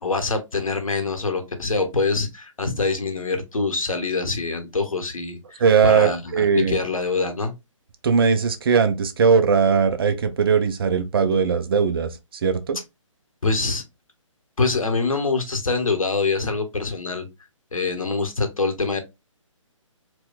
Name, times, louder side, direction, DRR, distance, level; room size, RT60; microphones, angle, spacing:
voice 1, 0.0-7.5 13.4-13.8 14.6-17.3 17.7-19.0, left 3 dB, 85° left, 0.9 m, -25 dB
voice 2, 5.6-6.8 8.0-12.1 12.4-12.8, right 6 dB, 45° right, 0.5 m, -19 dB
4.2 x 2.2 x 2.2 m
figure-of-eight pair, 140°, 17 cm